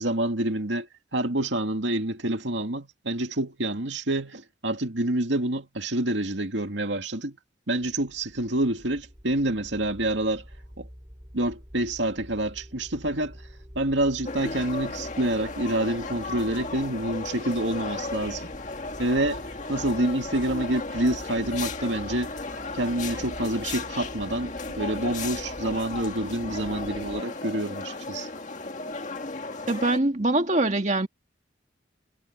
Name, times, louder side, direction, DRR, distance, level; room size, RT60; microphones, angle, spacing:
voice 1, 0.0-7.4 7.7-10.4 10.8-10.9 11.3-13.4 13.8-18.5 19.0-19.4 19.7-22.3 22.7-28.3, right 1 dB, 75° right, 2.4 m, -27 dB
sound 1, 7.8-27.2, equal, 20° right, 5.1 m, -46 dB
sound 2, 14.3-30.0, left 3 dB, 40° left, 1.8 m, -35 dB
voice 2, 29.7-31.1, right 2 dB, 40° right, 2.0 m, -23 dB
head